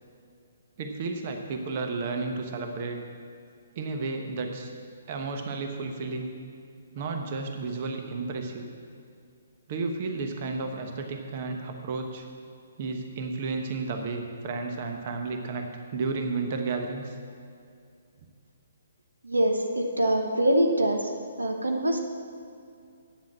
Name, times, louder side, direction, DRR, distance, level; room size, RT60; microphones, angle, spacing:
voice 1, 0.8-3.0 3.7-4.7 5.1-6.3 6.9-8.7 9.7-12.2 12.8-15.7 15.9-17.2, right 3 dB, 40° right, 4 dB, 1.2 m, -32 dB
voice 2, 19.2-21.0 21.4-22.0, right 1 dB, 80° right, 4 dB, 1.1 m, -24 dB
9.0 x 7.5 x 7.5 m, 2.4 s
figure-of-eight pair, 130°, 0 cm